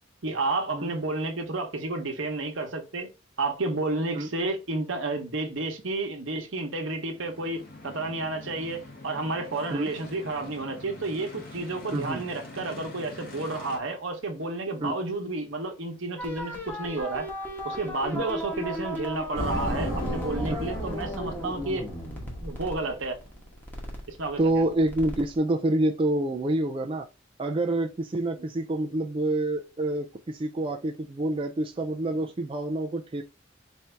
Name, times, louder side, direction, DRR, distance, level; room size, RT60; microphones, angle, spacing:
voice 1, 0.2-3.1 3.4-17.3 17.6-21.9 22.4-23.2 24.1-24.6 28.4-28.5, right 2 dB, 70° right, 1.0 m, -31 dB
sound 1, 7.1-13.8, left 2 dB, 45° left, 1.3 m, -44 dB
voice 2, 11.9-12.2 14.8-15.0 18.1-18.3 20.5-20.6 24.4-27.1 27.4-33.2, right 1 dB, 25° right, 0.4 m, -27 dB
sound 2, 16.2-25.4, equal, 10° left, 1.0 m, -36 dB
sound 3, 19.3-23.1, equal, 70° left, 2.2 m, -34 dB
4.4 x 2.7 x 3.3 m
head